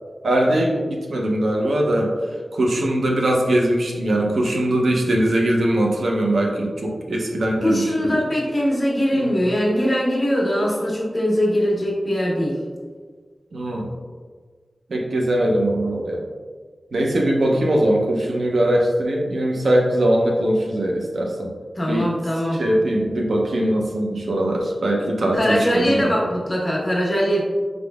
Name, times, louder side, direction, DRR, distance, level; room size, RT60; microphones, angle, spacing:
voice 1, 0.2-2.1 2.5-8.2 9.1-9.3 13.5-13.9 14.9-16.2 16.9-21.5 21.9-22.1 22.5-26.1, right 1 dB, 85° right, 0 dB, 0.6 m, -21 dB
voice 2, 7.6-12.6 21.8-22.6 25.3-27.4, equal, 30° left, -4 dB, 1.1 m, -21 dB
4.9 x 3.5 x 2.3 m, 1.5 s
wide cardioid pair, 90°, 0 cm